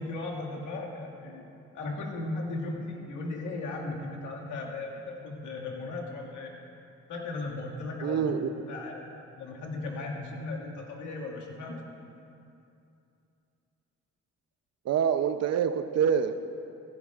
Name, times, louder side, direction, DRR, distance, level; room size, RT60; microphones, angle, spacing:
voice 1, 0.0-1.5 1.7-6.5 7.1-8.3 8.7-9.1 9.4-11.9, left 2 dB, 80° left, -1 dB, 2.0 m, -36 dB
voice 2, 8.0-8.7 14.8-16.4, right 7 dB, 60° right, 11 dB, 0.6 m, -26 dB
15.5 x 15.5 x 2.5 m, 2.6 s
cardioid pair, 90°, 30 cm